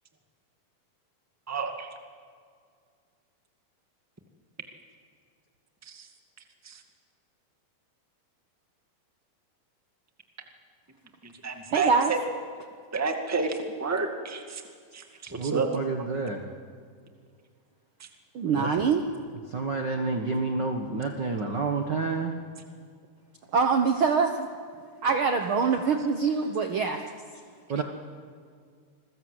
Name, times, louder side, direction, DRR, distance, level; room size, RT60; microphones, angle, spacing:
voice 1, 1.5-1.9 5.9-6.1 6.6-6.8 11.2-12.2 12.9-14.6 14.9-15.7 27.7-27.8, right 4 dB, 10° right, 4 dB, 1.1 m, -30 dB
voice 2, 11.7-12.1 18.3-19.0 23.5-24.5 25.0-27.0, right 5 dB, 80° right, 5 dB, 1.1 m, -24 dB
voice 3, 15.3-16.4 18.6-18.7 19.5-22.3 27.7-27.8, right 4 dB, 55° right, 3 dB, 1.2 m, -29 dB
28.0 x 21.0 x 8.0 m, 2.1 s
omnidirectional pair, 4.1 m